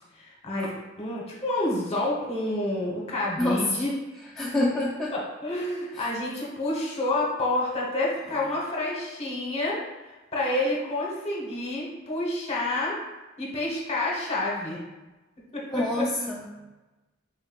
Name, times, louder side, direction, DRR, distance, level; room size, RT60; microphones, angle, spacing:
voice 1, 0.1-0.7 1.0-3.9 5.1-13.0 13.4-14.8 15.5-16.1, left 1 dB, 30° left, -3 dB, 1.0 m, -29 dB
voice 2, 4.4-5.1 6.0-6.1 15.7-16.6, left 1 dB, 5° left, -6 dB, 0.4 m, -27 dB
4.2 x 3.7 x 2.3 m, 1.1 s
head